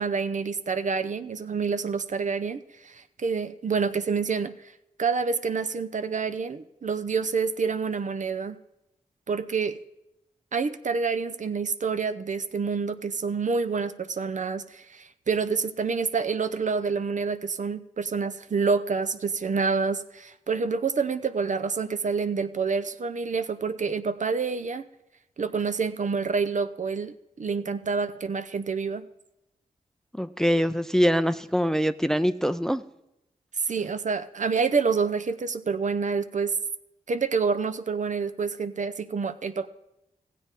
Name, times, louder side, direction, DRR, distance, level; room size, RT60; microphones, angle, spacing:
voice 1, 0.0-4.5 5.0-8.6 9.3-9.8 10.5-24.9 25.4-29.1 33.6-36.5 37.1-39.7, right 5 dB, 55° right, 11 dB, 0.6 m, -28 dB
voice 2, 30.1-32.8, equal, 5° left, 12 dB, 0.5 m, -24 dB
15.5 x 8.3 x 3.7 m, 0.86 s
cardioid pair, 40°, 15 cm